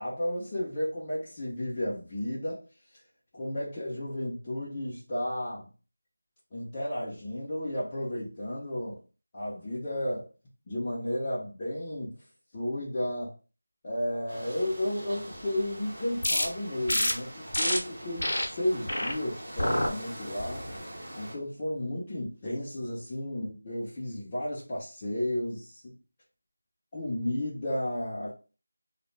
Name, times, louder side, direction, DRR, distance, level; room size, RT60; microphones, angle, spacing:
voice 1, 0.0-2.6 3.3-5.7 6.5-9.0 9.3-10.3 10.7-12.2 12.5-13.3 13.8-20.7 21.2-25.9 26.9-28.3, left 1 dB, 20° left, -9 dB, 0.4 m, -33 dB
sound 1, 14.3-21.4, equal, 25° right, 0.8 m, -43 dB
sound 2, 16.2-16.4 16.9-17.1 17.5-17.8 18.2-18.4 18.9-19.1 19.6-19.9 20.4-20.7, left 1 dB, 55° left, 0.7 m, -27 dB
2.1 x 2.0 x 3.1 m, 0.35 s
figure-of-eight pair, 175°, 0 cm